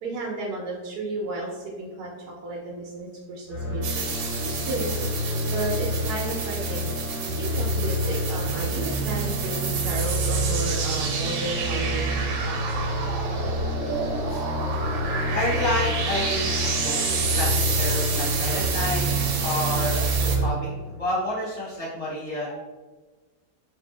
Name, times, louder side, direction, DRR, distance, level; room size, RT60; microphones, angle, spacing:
voice 1, 0.0-4.0 4.6-7.0 7.2-12.1 12.4-12.6, right 2 dB, 70° right, -2 dB, 1.1 m, -33 dB
sound 1, 3.5-20.5, equal, 75° left, 0.4 m, -28 dB
sound 2, 3.8-20.4, right 5 dB, 90° right, 1.2 m, -30 dB
voice 2, 15.3-22.6, left 1 dB, 25° left, -8 dB, 0.9 m, -30 dB
2.6 x 2.6 x 3.8 m, 1.3 s
omnidirectional pair, 1.8 m